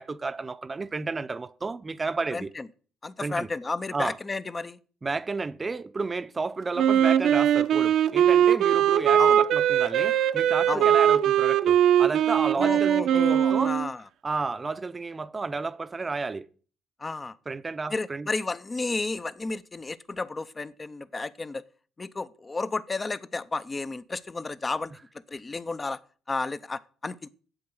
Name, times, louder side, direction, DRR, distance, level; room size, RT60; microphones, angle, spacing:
voice 1, 0.0-2.5 3.2-3.5 3.9-4.2 5.0-13.7 14.2-16.5 17.5-18.3, right 3 dB, 25° right, 0.7 m, -32 dB
voice 2, 2.3-2.7 3.0-4.8 9.2-9.4 10.7-10.9 12.5-14.0 17.0-17.4 17.9-21.6 22.0-24.9 25.3-26.0 26.3-27.3, left 3 dB, 20° left, 0.6 m, -32 dB
Wind instrument woodwind instrument, 6.8-13.9, right 10 dB, 70° right, 0.8 m, -21 dB
8.9 x 7.9 x 7.9 m
cardioid pair, 115°, 0 cm